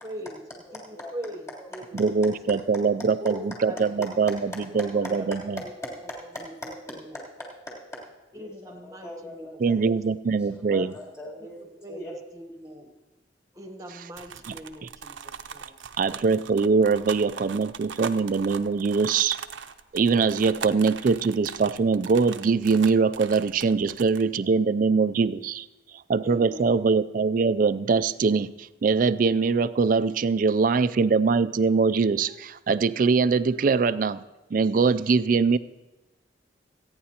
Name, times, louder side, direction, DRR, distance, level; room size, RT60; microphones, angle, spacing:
voice 1, 0.0-0.4 0.7-0.8 1.1-2.0 2.4-2.5 3.2-4.0 4.7-5.2 6.4-7.2 8.3-9.6 11.4-11.5 11.8-12.1 12.3-12.9 13.5-15.8 20.6-20.7 26.2-26.8, equal, 20° right, 5 dB, 1.1 m, -40 dB
voice 2, 0.6-1.7 2.6-3.1 3.5-4.4 4.7-4.9 5.3-8.0 8.3-9.8 10.2-12.1, left 1 dB, 15° left, -5 dB, 3.2 m, -41 dB
voice 3, 1.9-5.6 9.6-10.9 13.9-14.0 14.5-14.6 14.8-14.9 16.0-19.4 19.9-25.7 26.1-34.2 34.5-35.6, right 4 dB, 45° right, 15 dB, 0.3 m, -23 dB
sound 1, 14.2-24.2, right 7 dB, 85° right, 0.6 m, -40 dB
28.0 x 9.6 x 2.9 m, 1.1 s
head